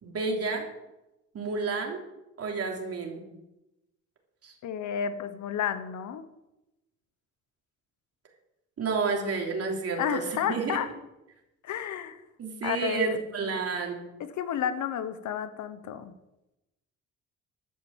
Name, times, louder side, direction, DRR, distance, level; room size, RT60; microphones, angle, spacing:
voice 1, 0.0-0.7 1.3-2.0 2.4-3.2 4.4-4.5 8.8-10.8 12.4-14.0, right 4 dB, 55° right, 1 dB, 3.2 m, -30 dB
voice 2, 4.6-6.3 10.0-10.9 11.6-12.2 12.6-13.2 14.2-16.1, left 8 dB, 75° left, 12 dB, 1.2 m, -31 dB
12.5 x 7.1 x 7.5 m, 0.96 s
cardioid pair, 90°, 30 cm